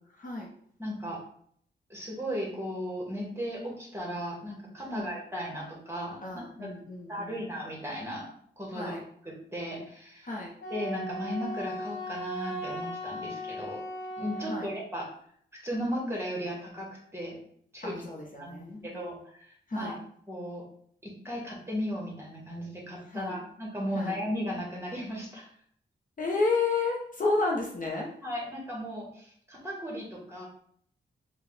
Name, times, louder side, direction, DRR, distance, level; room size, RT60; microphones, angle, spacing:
voice 1, 0.8-1.2 1.9-6.7 7.1-8.3 8.6-8.9 9.2-10.3 10.7-13.8 14.2-15.1 15.5-17.4 17.7-18.0 18.4-18.6 18.8-19.9 20.3-20.7 21.0-25.5 28.2-30.5, equal, 15° right, -2 dB, 1.6 m, -36 dB
voice 2, 6.2-7.4 8.7-9.0 10.2-10.5 14.5-14.7 17.8-19.1 19.7-20.0 23.1-23.4 23.9-24.1 26.2-28.1, left 3 dB, 45° left, -1 dB, 0.9 m, -31 dB
Wind instrument woodwind instrument, 10.6-14.9, equal, 80° left, 0.9 m, -37 dB
4.6 x 2.4 x 3.4 m, 0.62 s
cardioid pair, 65°, 20 cm